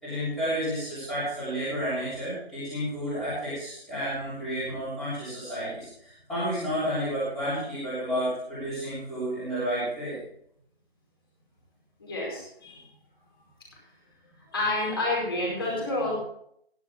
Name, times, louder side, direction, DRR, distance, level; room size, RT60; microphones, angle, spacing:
voice 1, 0.0-10.2, equal, ahead, -15 dB, 3.3 m, -31 dB
voice 2, 12.0-12.8 14.5-16.1, left 2 dB, 25° left, -4 dB, 4.9 m, -29 dB
16.5 x 10.5 x 3.6 m, 0.70 s
figure-of-eight pair, 175°, 31 cm